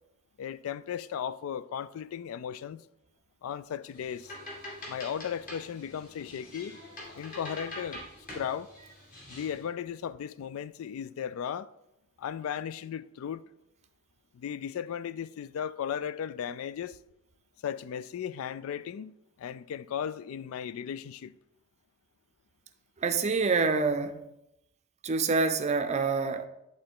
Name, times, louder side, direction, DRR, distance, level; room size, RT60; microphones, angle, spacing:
voice 1, 0.4-2.8 3.4-4.4 4.9-6.8 7.2-8.0 8.3-8.7 9.3-11.7 12.2-13.4 14.3-17.0 17.6-21.3, left 8 dB, 75° left, 0.3 m, -36 dB
sound 1, 3.9-9.6, left 1 dB, 40° left, 2.0 m, -45 dB
voice 2, 23.0-24.2 25.0-26.5, right 4 dB, 30° right, 0.5 m, -26 dB
10.5 x 3.8 x 3.7 m
head